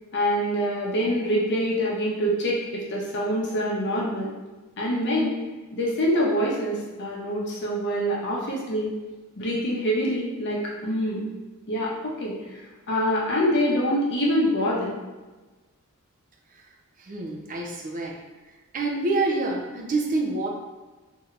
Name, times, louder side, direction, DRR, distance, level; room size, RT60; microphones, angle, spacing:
voice 1, 0.1-4.3 4.8-5.3 5.7-8.9 9.4-11.2 11.7-12.6 12.9-14.9, equal, 50° left, -4 dB, 0.7 m, -25 dB
voice 2, 17.1-18.2 18.7-20.5, right 2 dB, 35° right, 0 dB, 0.4 m, -27 dB
3.2 x 2.7 x 2.4 m, 1.2 s
head